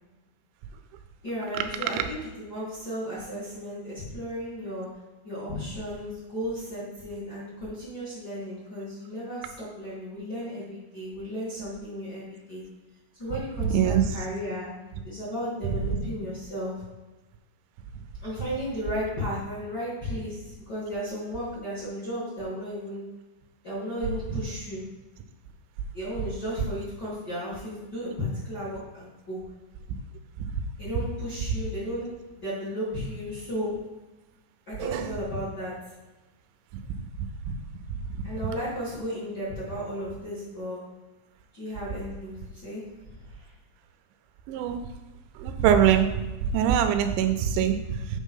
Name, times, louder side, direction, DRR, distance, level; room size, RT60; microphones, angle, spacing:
voice 1, 1.2-4.9 5.2-12.6 13.2-14.7 15.0-16.8 18.2-23.0 23.6-24.8 25.9-29.4 30.8-32.1 32.4-33.7 34.7-35.7 38.2-40.8 41.5-42.8 43.3-43.4, equal, 35° left, -9 dB, 1.8 m, -34 dB
voice 2, 13.6-14.0 34.8-35.1 37.5-37.6 37.9-38.2 44.5-44.8 45.4-46.2 46.5-48.2, right 9 dB, 85° right, 8 dB, 2.9 m, -23 dB
8.2 x 3.8 x 5.5 m, 1.1 s
omnidirectional pair, 5.2 m